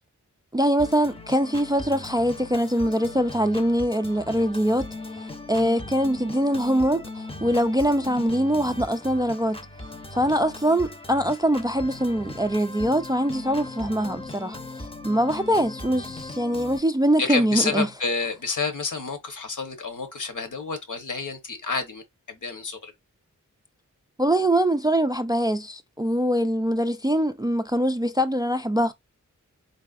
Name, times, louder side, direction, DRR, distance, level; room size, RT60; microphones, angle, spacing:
voice 1, 0.5-4.9 5.2-9.6 10.1-17.9 24.2-28.9, equal, 15° right, 0.3 m, -23 dB
Organ, 0.8-16.8, left 2 dB, 20° left, 0.7 m, -39 dB
voice 2, 17.2-22.9, left 4 dB, 70° left, 1.2 m, -29 dB
4.1 x 3.5 x 2.4 m
wide cardioid pair, 75°, 32 cm